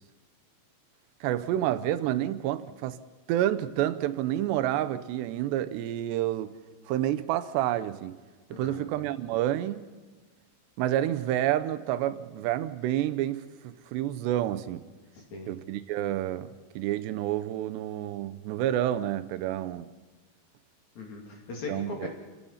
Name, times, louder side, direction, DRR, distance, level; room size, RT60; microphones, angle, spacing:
voice 1, 1.2-3.0 3.3-6.5 6.9-8.2 8.5-9.9 10.8-14.8 15.5-19.9 21.7-22.1, right 12 dB, 80° right, 2.8 m, -29 dB
voice 2, 8.5-8.9 15.1-15.5 20.9-22.1, left 3 dB, 45° left, 3.4 m, -39 dB
27.0 x 17.0 x 5.6 m
omnidirectional pair, 5.2 m